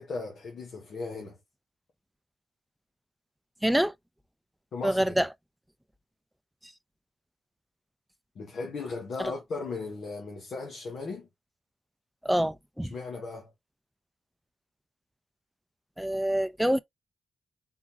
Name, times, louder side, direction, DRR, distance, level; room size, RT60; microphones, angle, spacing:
voice 1, 0.0-1.4 4.7-5.1 8.3-11.3 12.8-13.5, left 4 dB, 70° left, 1.3 m, -37 dB
voice 2, 3.6-3.9 4.8-5.3 9.2-9.3 12.2-12.9 16.0-16.8, right 1 dB, 5° right, 0.5 m, -26 dB
3.8 x 3.7 x 2.9 m
supercardioid pair, 45°, 0 cm